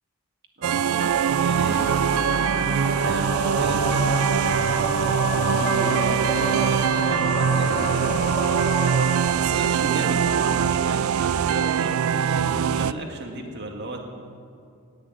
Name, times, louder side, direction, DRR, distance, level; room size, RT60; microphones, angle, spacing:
voice 1, 0.6-1.1 1.4-5.1 5.5-8.4 9.3-14.1, right 2 dB, 50° right, 2 dB, 1.8 m, -35 dB
sound 1, 0.6-12.9, right 8 dB, 80° right, 0.4 m, -22 dB
sound 2, 1.1-9.1, left 1 dB, 30° left, 3.1 m, -29 dB
17.5 x 6.7 x 9.0 m, 2.4 s
head